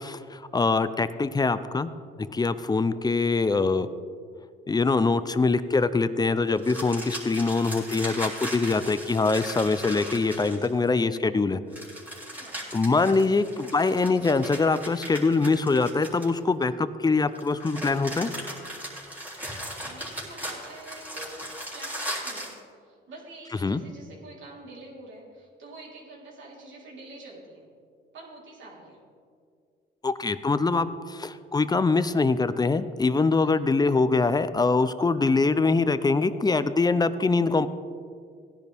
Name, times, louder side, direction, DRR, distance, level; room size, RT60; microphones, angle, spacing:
voice 1, 0.0-1.9 2.2-3.9 4.7-11.6 12.7-18.3 23.6-23.8 30.0-37.7, left 3 dB, 20° left, 13 dB, 0.5 m, -23 dB
sound 1, 6.6-10.9 11.7-16.6 17.4-22.6, equal, 10° right, 3.3 m, -37 dB
voice 2, 12.3-12.6 13.3-13.4 19.8-21.5 21.7-22.5 22.8-27.7 28.1-29.0 33.4-33.6, right 2 dB, 70° right, -4 dB, 3.7 m, -46 dB
16.5 x 10.5 x 3.5 m, 2.2 s
cardioid pair, 90°, 20 cm